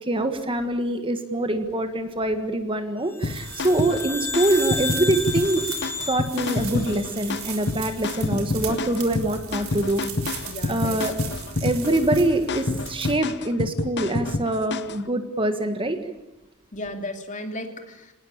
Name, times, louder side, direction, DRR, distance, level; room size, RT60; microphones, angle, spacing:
voice 1, 0.1-5.7 6.1-10.0 10.7-11.2 11.6-16.0, right 1 dB, 25° right, 8 dB, 1.6 m, -24 dB
sound 1, 3.1-7.7, left 3 dB, 10° left, 3.3 m, -33 dB
sound 2, 3.2-15.0, left 3 dB, 50° left, 1.0 m, -29 dB
sound 3, 3.2-13.1, right 7 dB, 65° right, 4.1 m, -38 dB
voice 2, 10.5-11.1 16.7-18.1, left 1 dB, 35° left, 5 dB, 2.8 m, -35 dB
26.5 x 19.0 x 8.8 m, 0.95 s
head